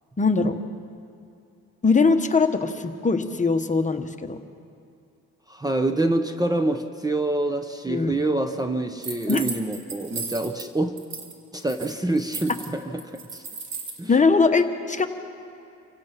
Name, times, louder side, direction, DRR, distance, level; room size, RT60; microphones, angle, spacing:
voice 1, 0.2-0.6 1.8-4.4 7.9-8.2 9.3-9.4 14.1-15.1, left 4 dB, 25° left, 7 dB, 1.2 m, -21 dB
voice 2, 5.5-10.9 11.5-13.4 14.0-14.1, right 2 dB, 15° right, 7 dB, 0.9 m, -26 dB
sound 1, 9.0-10.7 11.0-11.3 11.6-14.0, right 4 dB, 65° right, 2.5 m, -35 dB
27.0 x 16.5 x 5.9 m, 2.5 s
cardioid pair, 90°, 30 cm